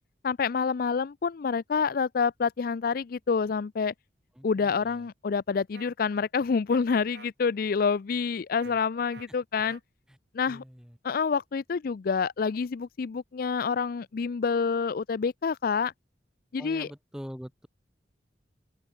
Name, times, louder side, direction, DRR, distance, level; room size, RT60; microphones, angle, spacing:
voice 1, 0.2-3.9 4.4-9.8 10.3-10.6 11.0-15.9 16.5-16.9, left 5 dB, 55° left, 0.4 m, -27 dB
voice 2, 4.4-5.1 8.6-8.8 9.5-9.6 10.1-10.2 10.5-11.0 16.6-17.7, equal, 5° right, 2.1 m, -44 dB
sound 1, 5.7-5.9 6.7-6.8 7.1-7.3 8.6-8.7 9.1-9.3 9.6-9.8, right 4 dB, 65° right, 3.4 m, -48 dB
open air
head